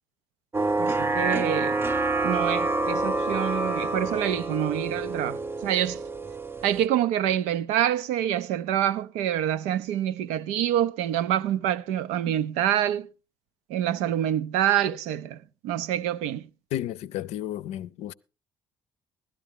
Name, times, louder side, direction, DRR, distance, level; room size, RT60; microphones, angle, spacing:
sound 1, 0.5-6.9, right 3 dB, 20° right, 0.6 m, -27 dB
voice 1, 0.8-1.8 2.2-6.0 6.6-13.1 13.7-16.4, right 11 dB, 75° right, 0.6 m, -26 dB
voice 2, 16.7-18.1, left 12 dB, 70° left, 0.5 m, -32 dB
16.0 x 12.5 x 3.6 m
hypercardioid pair, 60°, 12 cm